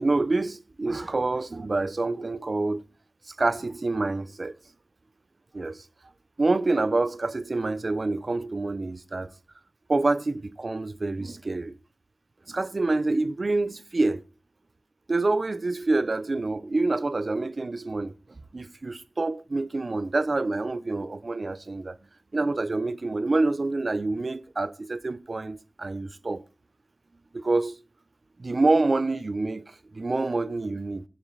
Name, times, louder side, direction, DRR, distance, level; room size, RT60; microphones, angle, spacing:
voice 1, 0.0-2.8 3.4-4.5 5.5-5.8 6.4-9.3 9.9-11.7 12.5-14.2 15.1-18.1 18.5-22.0 22.3-26.4 27.3-27.7 28.4-31.0, right 2 dB, 70° right, 0.8 m, -27 dB
16.0 x 7.4 x 4.1 m
wide cardioid pair, 60°, 0 cm